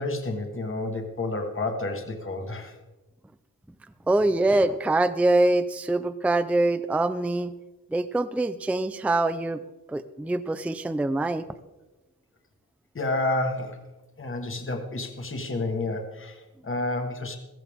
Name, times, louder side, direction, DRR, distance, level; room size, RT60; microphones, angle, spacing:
voice 1, 0.0-2.7 12.9-13.8 14.2-17.4, left 2 dB, 35° left, 3 dB, 1.6 m, -30 dB
voice 2, 4.1-7.5 7.9-9.6 9.9-11.5, right 2 dB, 5° right, 12 dB, 0.4 m, -24 dB
15.0 x 15.0 x 3.6 m, 1.1 s
wide cardioid pair, 110°, 36 cm